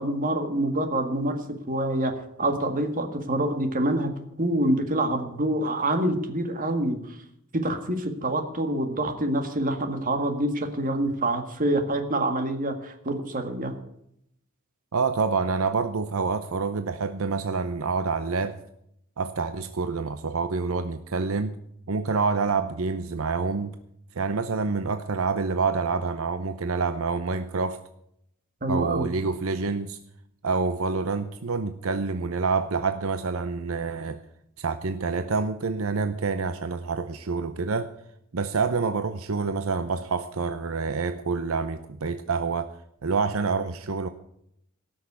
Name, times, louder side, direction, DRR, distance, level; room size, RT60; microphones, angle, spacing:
voice 1, 0.0-4.1 4.4-7.0 7.5-13.7 28.6-29.1, right 1 dB, 40° right, 6 dB, 1.8 m, -26 dB
voice 2, 14.9-18.6 19.2-21.6 21.9-23.8 24.1-27.8 28.7-30.0 30.4-34.2 34.6-37.9 38.3-42.7 43.0-44.1, right 4 dB, 75° right, 10 dB, 0.7 m, -27 dB
17.5 x 6.5 x 8.1 m, 0.74 s
head